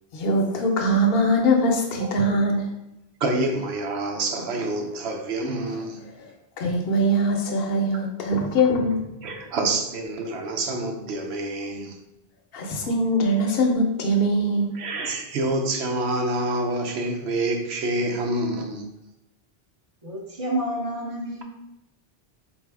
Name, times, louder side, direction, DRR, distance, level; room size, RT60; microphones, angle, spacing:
voice 1, 0.1-2.7 6.6-9.1 12.5-14.7, equal, 65° left, 2 dB, 0.9 m, -22 dB
voice 2, 3.2-6.0 9.2-12.0 14.7-18.9, right 2 dB, 85° right, 3 dB, 0.9 m, -27 dB
voice 3, 20.0-21.4, right 1 dB, 35° right, -1 dB, 0.8 m, -29 dB
4.2 x 2.6 x 3.3 m, 0.88 s
omnidirectional pair, 1.1 m